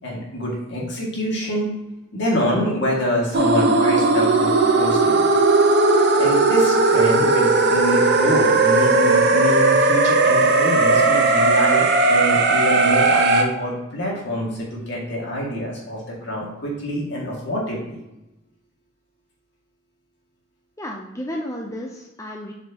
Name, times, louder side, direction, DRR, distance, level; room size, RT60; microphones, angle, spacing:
voice 1, 0.0-1.7 2.1-5.2 6.2-18.0, equal, 60° left, -3 dB, 2.2 m, -26 dB
sound 1, 3.3-13.4, right 3 dB, 55° right, 0.8 m, -17 dB
voice 2, 20.8-22.5, equal, 15° left, 0 dB, 0.6 m, -32 dB
7.8 x 5.0 x 2.9 m, 0.96 s
head